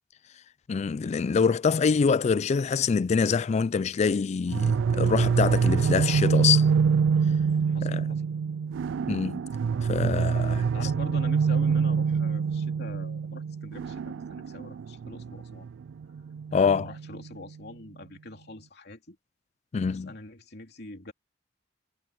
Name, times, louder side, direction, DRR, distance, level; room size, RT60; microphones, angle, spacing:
voice 1, 0.7-6.6 7.8-8.0 9.1-9.4 9.9-10.7 16.5-16.9 19.7-20.1, left 5 dB, 35° left, 0.3 m, -25 dB
sound 1, 4.5-17.3, right 6 dB, 90° right, 0.3 m, -26 dB
voice 2, 6.0-6.6 7.6-8.3 9.7-9.9 10.7-15.7 16.5-19.2 19.9-21.1, left 2 dB, 60° left, 3.1 m, -44 dB
head